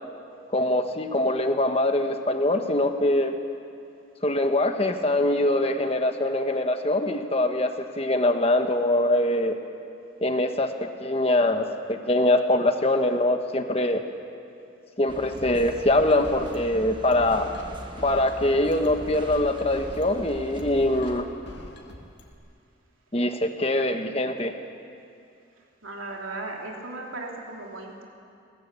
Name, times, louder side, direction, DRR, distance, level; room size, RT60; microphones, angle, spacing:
voice 1, 0.5-3.4 4.2-9.6 10.2-14.0 15.0-17.5 18.0-21.3 23.1-24.5, left 1 dB, 30° left, 6 dB, 1.2 m, -23 dB
sound 1, 15.1-21.2, equal, 25° right, 1.4 m, -41 dB
sound 2, 15.4-22.3, equal, 55° left, 2.2 m, -43 dB
voice 2, 25.8-28.0, right 2 dB, 90° right, 0 dB, 3.4 m, -36 dB
20.5 x 17.0 x 8.5 m, 2.5 s
head